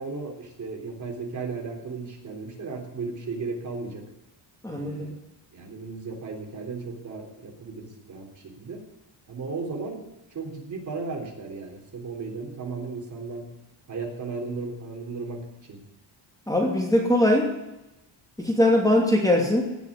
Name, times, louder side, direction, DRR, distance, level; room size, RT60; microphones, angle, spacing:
voice 1, 0.0-4.0 4.7-5.1 5.5-8.8 9.3-10.1 10.3-13.5 13.9-15.8, right 4 dB, 40° right, 0 dB, 3.7 m, -35 dB
voice 2, 4.6-5.1 16.5-17.5 18.4-19.6, left 1 dB, 5° left, 0 dB, 2.7 m, -21 dB
18.0 x 6.5 x 9.7 m, 0.94 s
cardioid pair, 140°, 46 cm